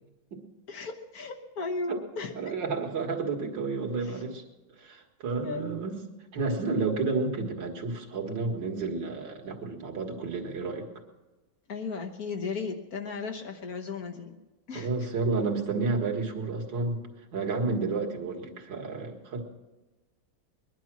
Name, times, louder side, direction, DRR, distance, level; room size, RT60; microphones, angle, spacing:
voice 1, 0.7-2.3 4.0-4.2 5.4-5.8 11.7-14.3 14.7-14.9, left 4 dB, 50° left, 3 dB, 1.5 m, -35 dB
voice 2, 2.3-4.4 4.8-6.0 6.3-10.9 14.7-17.0 17.3-19.4, right 3 dB, 65° right, 1 dB, 2.5 m, -31 dB
21.0 x 11.5 x 6.1 m, 1.1 s
omnidirectional pair, 2.2 m